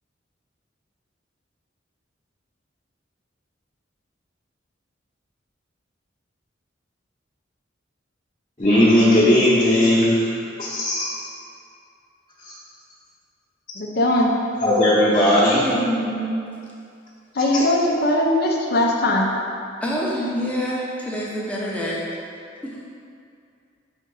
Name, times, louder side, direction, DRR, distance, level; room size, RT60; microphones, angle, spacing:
voice 1, 8.6-10.3 10.6-11.1 12.4-12.5 14.6-15.6 17.5-17.6, left 1 dB, 30° left, -10 dB, 1.0 m, -17 dB
voice 2, 13.8-14.3 17.3-19.3, left 1 dB, 55° left, -1 dB, 0.6 m, -20 dB
voice 3, 15.5-16.4 19.8-22.0 22.6-22.8, equal, 5° left, -5 dB, 0.7 m, -26 dB
5.2 x 3.8 x 5.4 m, 2.4 s
head